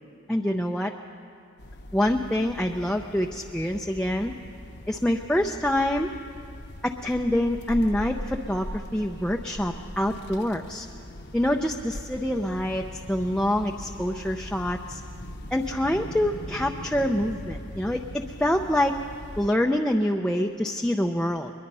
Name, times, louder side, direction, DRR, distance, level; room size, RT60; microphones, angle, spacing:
voice 1, 0.3-0.9 1.9-4.3 4.9-6.1 6.8-10.9 11.3-15.0 15.5-18.9 19.4-21.5, left 1 dB, 5° left, 1 dB, 0.6 m, -26 dB
sound 1, 1.6-19.5, left 1 dB, 55° left, 1.1 m, -40 dB
21.5 x 21.5 x 5.5 m, 2.7 s
head